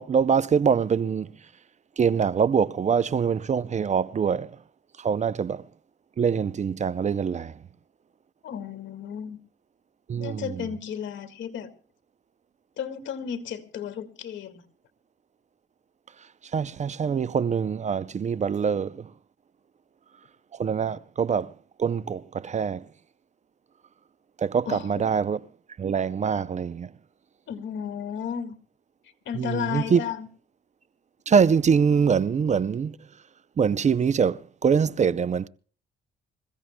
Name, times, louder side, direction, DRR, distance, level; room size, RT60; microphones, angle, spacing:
voice 1, 0.0-1.3 2.0-4.5 5.0-5.6 6.2-7.5 10.1-10.7 16.5-19.1 20.5-21.5 21.8-22.9 24.4-25.4 25.8-26.9 29.4-30.0 31.3-33.0 33.6-35.5, right 6 dB, 35° right, 0.5 m, -24 dB
voice 2, 8.4-9.4 10.2-11.7 12.8-14.6 24.7-25.0 27.5-28.5 29.3-30.3, left 8 dB, 70° left, 1.9 m, -33 dB
27.0 x 15.5 x 2.2 m
cardioid pair, 90°, 20 cm